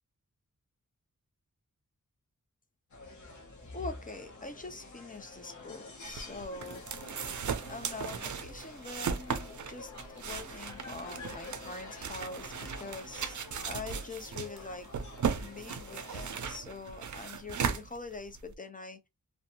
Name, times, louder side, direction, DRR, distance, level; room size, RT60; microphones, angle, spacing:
sound 1, 2.9-16.6, left 3 dB, 60° left, 0.7 m, -49 dB
voice 1, 3.6-6.9 7.7-13.4 13.6-14.9 15.4-19.1, left 3 dB, 25° left, 0.6 m, -43 dB
sound 2, 6.1-18.5, right 6 dB, 60° right, 0.5 m, -37 dB
2.6 x 2.2 x 2.8 m
wide cardioid pair, 80°, 33 cm